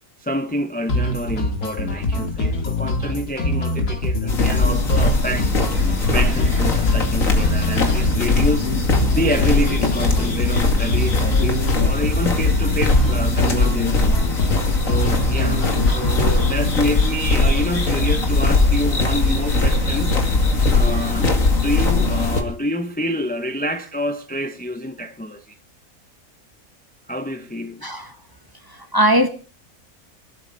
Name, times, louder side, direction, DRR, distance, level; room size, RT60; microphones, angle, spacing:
voice 1, 0.2-8.7 9.1-14.2 14.8-15.7 15.9-21.3 21.6-25.6 27.1-27.9, equal, 5° left, 0.8 m, -27 dB
sound 1, 0.9-16.9, left 1 dB, 90° left, 2.6 m, -24 dB
sound 2, 4.3-22.4, left 3 dB, 60° left, 2.8 m, -20 dB
sound 3, 4.9-21.3, right 1 dB, 50° right, 3.4 m, -38 dB
voice 2, 27.8-28.2 28.7-29.3, right 1 dB, 15° right, 1.2 m, -19 dB
23.5 x 12.5 x 4.0 m
omnidirectional pair, 1.6 m